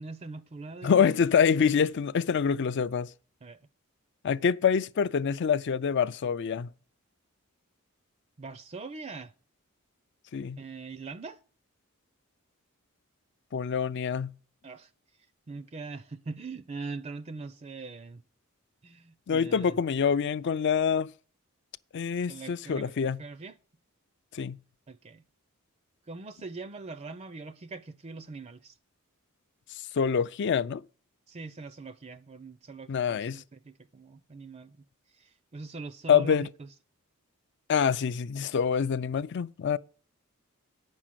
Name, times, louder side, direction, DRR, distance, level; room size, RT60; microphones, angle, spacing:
voice 1, 0.0-1.1 3.4-3.6 8.4-9.3 10.6-11.4 14.6-14.9 15.5-18.2 18.8-19.8 22.3-23.6 24.9-25.2 26.1-28.8 31.3-34.8 35.1-36.7, right 3 dB, 30° right, 0.4 m, -42 dB
voice 2, 0.8-3.1 4.2-6.7 10.3-10.6 13.5-14.3 19.3-21.1 21.9-23.2 24.3-24.6 29.9-30.8 32.9-33.4 36.1-36.5 37.7-39.8, left 7 dB, 55° left, 0.4 m, -26 dB
8.9 x 6.2 x 7.3 m
head